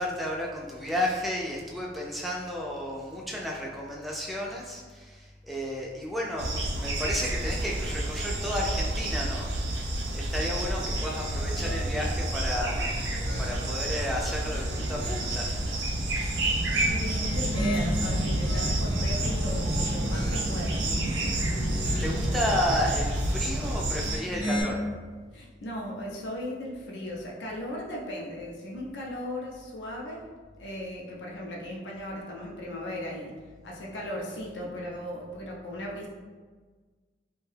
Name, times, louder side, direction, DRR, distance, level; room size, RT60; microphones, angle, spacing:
voice 1, 0.0-6.5 6.7-9.8 10.1-13.0 13.4-16.4 21.7-24.8, left 1 dB, ahead, -3 dB, 0.3 m, -32 dB
sound 1, 6.4-24.2, right 1 dB, 85° right, 0.5 m, -29 dB
sound 2, 10.9-12.2 12.7-13.9 14.4-15.5 17.0-19.1 19.6-20.8 21.2-22.4 23.8-24.6, equal, 65° left, 0.9 m, -36 dB
voice 2, 16.8-21.4 25.3-30.3 30.6-33.4 33.6-36.1, left 1 dB, 85° left, -2 dB, 0.5 m, -37 dB
2.6 x 2.2 x 3.2 m, 1.4 s
head